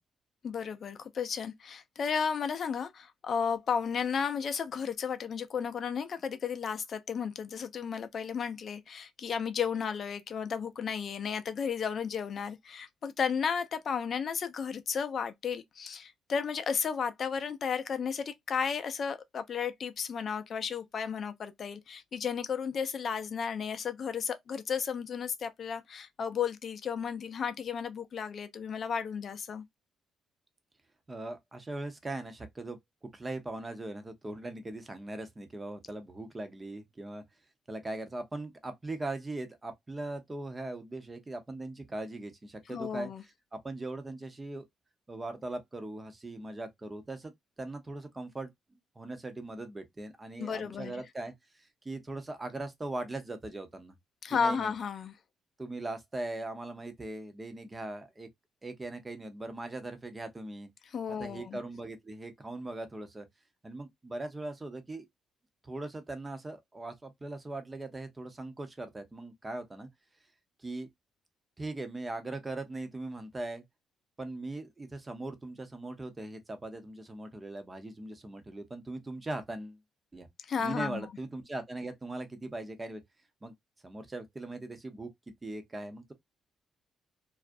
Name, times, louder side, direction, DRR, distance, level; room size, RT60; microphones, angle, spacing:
voice 1, 0.4-29.6 42.7-43.2 50.4-51.0 54.2-55.1 60.9-61.6 80.4-81.1, left 6 dB, 55° left, 0.4 m, -33 dB
voice 2, 31.1-37.2 37.7-43.1 43.5-44.6 45.1-47.3 47.6-48.5 49.0-53.9 54.3-54.7 55.6-58.3 58.6-60.7 61.2-63.3 63.6-65.1 65.6-69.9 70.6-70.9 71.6-73.6 74.2-79.8 80.1-80.3 80.6-83.0 83.4-83.5 83.8-86.1, right 2 dB, 20° right, 0.6 m, -40 dB
2.4 x 2.0 x 2.5 m
cardioid pair, 90°, 0 cm